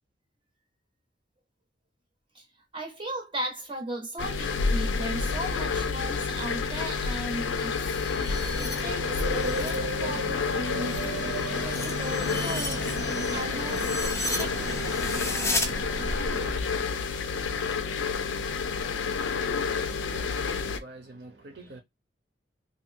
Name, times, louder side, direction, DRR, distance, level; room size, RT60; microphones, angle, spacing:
voice 1, 2.7-7.8 8.6-11.2 11.6-13.0 13.3-14.9, right 1 dB, 25° right, 0.7 m, -37 dB
sound 1, 4.2-20.8, left 5 dB, 75° left, 0.4 m, -29 dB
sound 2, 7.4-9.8 10.2-15.7, left 2 dB, 15° left, 0.4 m, -35 dB
sound 3, 8.2-16.6, right 2 dB, 80° right, 0.6 m, -35 dB
voice 2, 20.0-21.8, right 2 dB, 60° right, 0.9 m, -46 dB
2.7 x 2.5 x 2.6 m
head